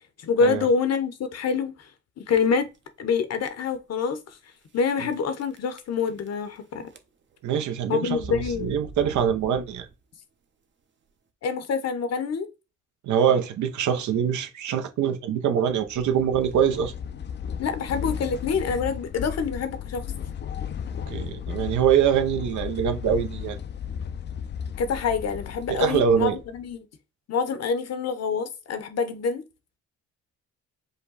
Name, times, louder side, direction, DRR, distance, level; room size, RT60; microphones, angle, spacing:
voice 1, 0.2-1.9 2.2-2.7 3.0-4.4 4.7-6.9 7.9-8.8 11.4-12.5 17.6-20.0 24.8-26.9 27.3-29.4, left 5 dB, 55° left, 0.9 m, -26 dB
sound 1, 2.3-2.8 3.4-3.5 3.7-3.8 4.7-5.1 5.4-6.6 6.9-7.4 8.1-10.0, right 4 dB, 40° right, 0.7 m, -43 dB
voice 2, 7.4-9.9 13.0-16.9 21.1-23.6 25.7-26.4, right 8 dB, 75° right, 0.8 m, -24 dB
sound 2, 15.7-26.7, left 8 dB, 35° left, 0.4 m, -35 dB
5.2 x 2.2 x 4.0 m
cardioid pair, 90°, 30 cm